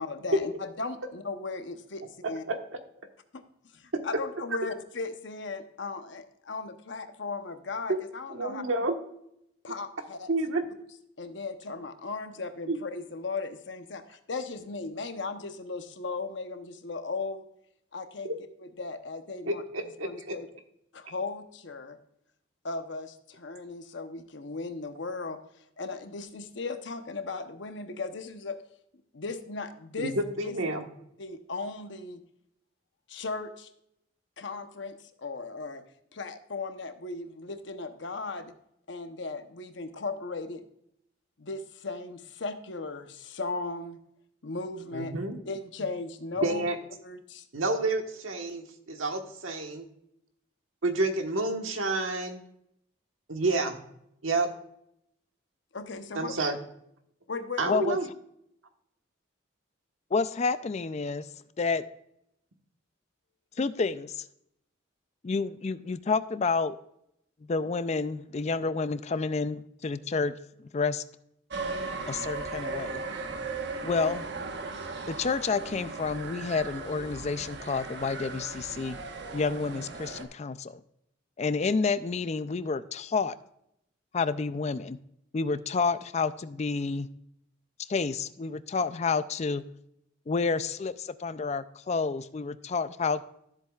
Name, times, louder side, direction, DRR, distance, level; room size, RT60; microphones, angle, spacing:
voice 1, 0.0-2.4 3.3-3.4 3.7-8.9 9.6-10.3 11.2-17.4 17.9-18.3 18.8-20.5 20.9-22.0 22.6-25.4 25.8-28.6 29.1-30.1 30.4-30.6 31.2-32.2 33.1-33.7 34.4-35.8 36.1-38.5 38.9-40.6 41.4-44.0 44.4-45.1 45.4-46.6 47.0-47.5 55.7-56.4 57.3-57.8, left 3 dB, 65° left, 8 dB, 0.9 m, -37 dB
voice 2, 8.3-8.9 10.3-10.6 12.7-12.8 18.2-18.3 19.5-20.4 30.0-30.8 44.9-45.4 46.4-46.8 47.5-49.8 50.8-52.4 53.3-53.8 54.2-54.5 56.1-56.6 57.6-58.1, right 2 dB, 90° right, 5 dB, 1.3 m, -29 dB
voice 3, 57.7-58.0 60.1-61.3 61.6-61.8 63.6-64.2 65.2-66.8 67.4-70.4 70.7-71.0 72.1-73.0 73.8-74.2 75.1-79.0 79.3-80.8 81.4-83.4 84.1-85.0 85.3-87.1 87.9-89.6 90.3-93.3, left 4 dB, 35° left, 14 dB, 0.4 m, -29 dB
sound 1, 71.5-80.2, right 3 dB, 60° right, 1.2 m, -37 dB
13.0 x 7.6 x 2.4 m, 0.76 s
head